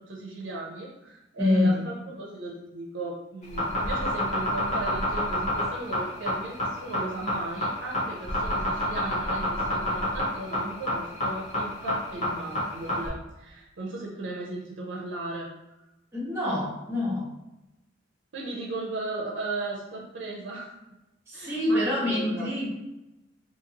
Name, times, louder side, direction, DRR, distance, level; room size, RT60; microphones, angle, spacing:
voice 1, 0.1-15.5 18.3-20.7 21.3-22.5, right 2 dB, 75° right, -3 dB, 0.5 m, -36 dB
voice 2, 1.4-1.8 16.1-17.3 21.3-22.7, left 1 dB, 15° right, -6 dB, 1.0 m, -26 dB
sound 1, 3.4-13.1, left 1 dB, 40° left, 0.8 m, -28 dB
2.7 x 2.6 x 2.8 m, 0.96 s
head